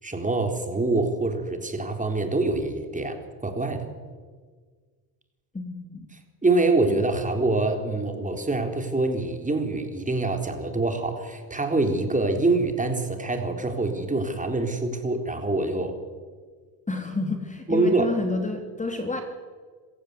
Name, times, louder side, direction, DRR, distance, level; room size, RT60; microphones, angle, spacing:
voice 1, 0.0-3.9 6.4-16.0 17.7-18.1, right 2 dB, 15° right, 5 dB, 3.8 m, -25 dB
voice 2, 5.5-6.1 6.9-7.0 16.9-19.2, left 3 dB, 15° left, 4 dB, 2.8 m, -30 dB
26.0 x 15.5 x 8.3 m, 1.5 s
cardioid pair, 100°, 46 cm